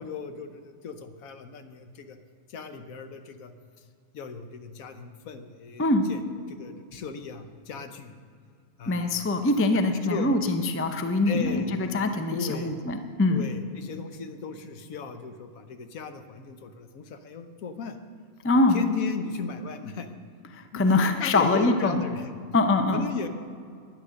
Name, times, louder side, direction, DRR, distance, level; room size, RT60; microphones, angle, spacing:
voice 1, 0.0-2.2 2.5-3.5 4.1-6.2 6.5-8.1 8.8-9.2 9.7-10.3 11.3-11.9 12.3-12.8 13.3-18.0 18.7-20.1 20.7-22.3 22.9-23.3, left 5 dB, 85° left, 8 dB, 1.3 m, -36 dB
voice 2, 8.9-13.5 18.4-18.8 20.5-22.0 22.5-23.1, left 2 dB, 20° left, 7 dB, 0.3 m, -23 dB
9.8 x 9.2 x 6.4 m, 2.2 s
omnidirectional pair, 1.4 m